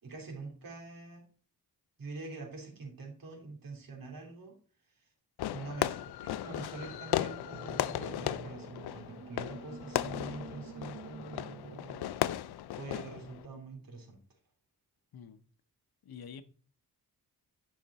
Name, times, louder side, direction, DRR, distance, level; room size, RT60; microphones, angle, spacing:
voice 1, 0.0-1.2 2.0-4.6 5.5-12.1 12.8-14.2, right 3 dB, 65° right, 3.1 m, -45 dB
Fireworks, 5.4-13.5, left 13 dB, 90° left, 0.5 m, -36 dB
sound 1, 6.7-12.9, right 5 dB, 35° right, 0.6 m, -49 dB
voice 2, 15.1-15.4 16.0-16.4, left 7 dB, 70° left, 0.9 m, -47 dB
11.0 x 5.8 x 4.2 m
wide cardioid pair, 105°, 38 cm